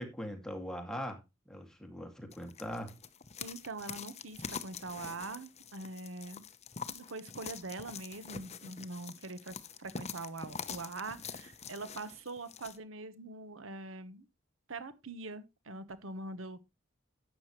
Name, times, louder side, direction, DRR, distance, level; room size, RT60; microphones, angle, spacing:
voice 1, 0.0-2.9, equal, 5° left, 2.2 m, -41 dB
sound 1, 2.3-12.8, left 6 dB, 35° left, 0.8 m, -45 dB
voice 2, 3.4-6.4 6.9-14.3 14.7-16.6, right 3 dB, 90° right, 1.2 m, -43 dB
12.0 x 8.7 x 3.1 m
head